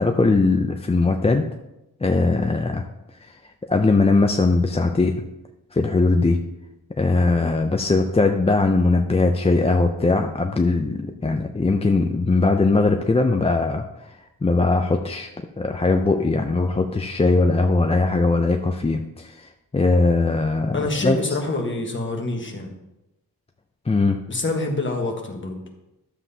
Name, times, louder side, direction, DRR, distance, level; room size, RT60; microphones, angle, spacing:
voice 1, 0.0-1.5 2.0-2.8 3.2-3.3 3.7-5.2 5.7-6.4 7.0-14.1 14.4-15.3 15.6-21.2 23.9-24.2, left 3 dB, 20° left, 4 dB, 0.4 m, -20 dB
voice 2, 20.7-22.8 24.3-25.6, left 2 dB, 35° left, 2 dB, 1.3 m, -26 dB
12.0 x 7.4 x 2.7 m, 0.93 s
wide cardioid pair, 145°, 36 cm